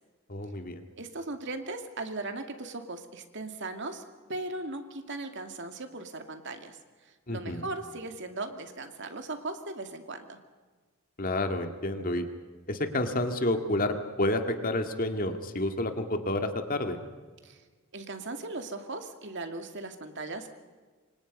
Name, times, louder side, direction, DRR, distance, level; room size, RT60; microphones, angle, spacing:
voice 1, 0.3-0.8 7.3-7.7 11.2-12.3 12.7-17.0, left 1 dB, 40° left, 6 dB, 2.0 m, -29 dB
voice 2, 1.0-4.0 4.3-6.8 7.3-10.4 17.4-17.6 17.9-20.5, right 2 dB, 60° right, 6 dB, 2.4 m, -38 dB
28.5 x 25.0 x 5.4 m, 1.4 s
head